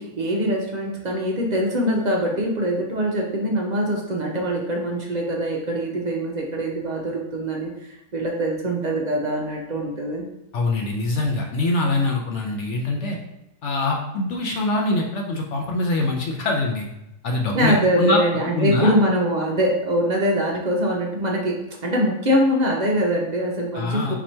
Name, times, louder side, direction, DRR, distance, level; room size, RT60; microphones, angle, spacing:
voice 1, 0.0-10.2 17.5-21.6 21.8-24.1, equal, 55° right, -1 dB, 0.4 m, -23 dB
voice 2, 10.5-13.2 13.6-16.9 17.2-18.2 18.5-18.9 23.7-24.1, left 2 dB, 60° left, 0 dB, 0.8 m, -24 dB
4.2 x 2.9 x 4.3 m, 0.88 s
omnidirectional pair, 1.6 m